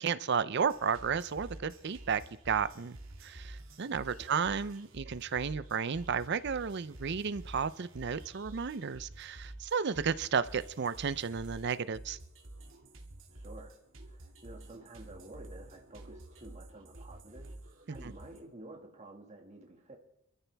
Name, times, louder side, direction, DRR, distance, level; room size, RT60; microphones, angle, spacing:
voice 1, 0.0-3.0 3.2-12.2 17.9-18.1, right 6 dB, 55° right, 15 dB, 0.5 m, -33 dB
sound 1, 0.6-18.4, right 1 dB, 75° right, 2.3 m, -50 dB
voice 2, 4.2-4.5 13.3-13.8 14.1-20.0, right 2 dB, 35° right, 1 dB, 1.9 m, -51 dB
27.0 x 13.5 x 3.4 m, 0.80 s
head